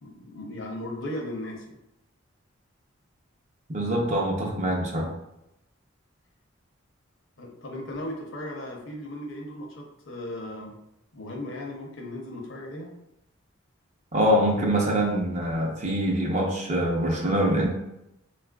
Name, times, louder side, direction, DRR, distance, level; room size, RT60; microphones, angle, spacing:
voice 1, 0.0-1.8 7.4-10.8 11.1-13.0, left 1 dB, 65° left, 0 dB, 0.7 m, -37 dB
voice 2, 3.7-5.1 14.1-17.7, equal, 35° right, -1 dB, 0.6 m, -24 dB
4.0 x 2.4 x 2.2 m, 0.86 s
head